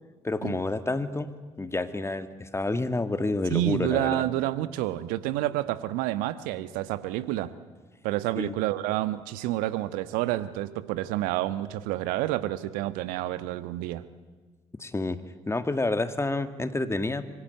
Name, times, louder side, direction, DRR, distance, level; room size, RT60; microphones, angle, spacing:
voice 1, 0.2-4.3 8.4-8.6 14.8-15.2 15.5-17.3, left 2 dB, 20° left, 10 dB, 2.0 m, -29 dB
voice 2, 3.5-7.5 8.0-14.0, right 14 dB, 70° right, 14 dB, 1.3 m, -29 dB
25.5 x 24.0 x 9.6 m, 1.3 s
hypercardioid pair, 50°, 15 cm